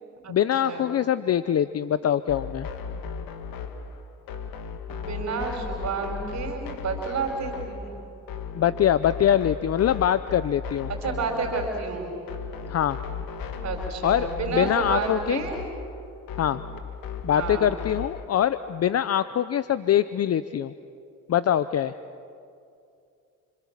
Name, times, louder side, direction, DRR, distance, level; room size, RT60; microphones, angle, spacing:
voice 1, 0.3-2.7 8.6-10.9 12.7-13.0 14.0-15.4 16.4-16.6 17.2-20.7 21.3-21.9, left 10 dB, 45° left, 13 dB, 0.8 m, -23 dB
sound 1, 2.3-18.2, left 6 dB, 75° left, 2.3 m, -36 dB
voice 2, 4.9-7.9 11.0-12.1 13.6-15.6 17.3-17.7, right 4 dB, 45° right, 2 dB, 4.7 m, -30 dB
30.0 x 26.0 x 7.5 m, 2.5 s
supercardioid pair, 85°, 35 cm